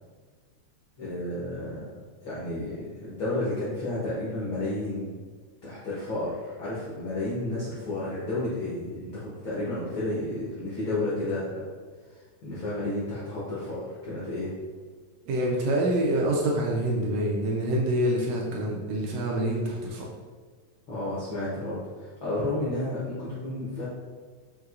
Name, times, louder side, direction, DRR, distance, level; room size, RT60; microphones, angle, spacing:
voice 1, 1.0-2.0 2.2-5.1 5.6-11.6 12.4-14.5 20.9-23.9, left 2 dB, 75° left, -8 dB, 1.1 m, -31 dB
voice 2, 15.3-20.1, right 1 dB, 80° right, -2 dB, 1.6 m, -26 dB
5.8 x 2.8 x 2.4 m, 1.5 s
omnidirectional pair, 3.4 m